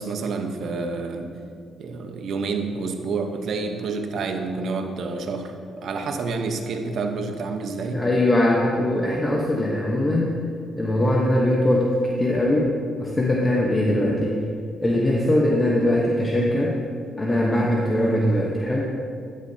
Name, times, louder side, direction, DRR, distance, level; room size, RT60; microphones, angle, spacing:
voice 1, 0.0-1.3 1.8-8.1, right 4 dB, 65° right, 5 dB, 0.9 m, -28 dB
voice 2, 7.9-10.3 10.8-12.7 13.0-14.4 14.8-16.7 17.2-18.8, left 1 dB, 20° left, -2 dB, 1.0 m, -21 dB
12.5 x 9.8 x 2.8 m, 2.3 s
cardioid pair, 90°, 0 cm